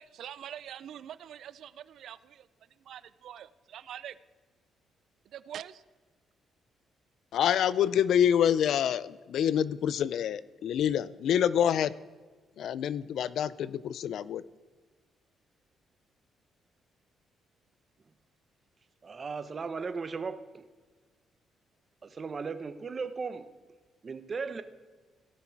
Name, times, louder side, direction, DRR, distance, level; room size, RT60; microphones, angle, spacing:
voice 1, 0.0-2.5 2.9-4.2 5.3-5.8, right 10 dB, 70° right, 0.3 m, -44 dB
voice 2, 7.3-11.9 12.6-14.4, left 9 dB, 70° left, 0.4 m, -27 dB
voice 3, 19.0-20.6 22.0-23.5 24.0-24.6, right 5 dB, 40° right, 0.9 m, -36 dB
17.5 x 5.9 x 4.6 m
cardioid pair, 90°, 0 cm